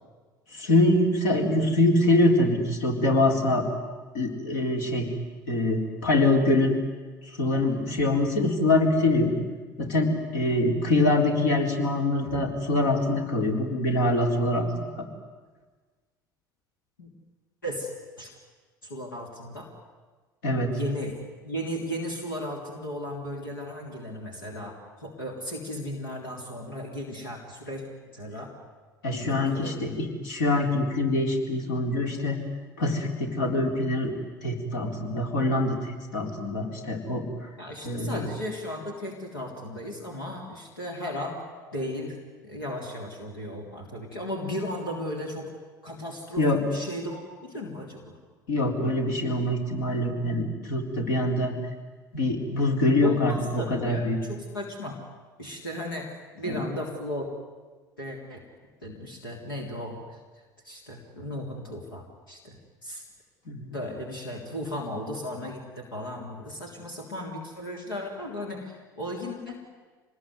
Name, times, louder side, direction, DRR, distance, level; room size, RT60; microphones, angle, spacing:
voice 1, 0.5-3.7 4.1-5.1 5.5-6.8 7.3-9.3 9.8-14.7 15.0-15.1 20.4-20.7 29.0-32.4 32.8-34.1 34.4-37.3 37.8-38.3 46.4-46.6 48.5-51.5 52.1-54.2 56.4-56.6 63.5-63.8, left 2 dB, 70° left, 2 dB, 3.9 m, -24 dB
voice 2, 18.8-19.7 20.7-21.2 21.4-27.8 28.1-28.5 29.1-30.0 37.6-41.4 41.7-42.2 42.4-45.5 45.8-48.2 53.0-55.0 55.4-56.1 56.3-57.3 58.0-58.4 58.8-60.2 60.6-63.0 63.7-69.6, equal, 85° left, 0 dB, 3.5 m, -35 dB
26.5 x 20.5 x 9.6 m, 1.4 s
hypercardioid pair, 65°, 11 cm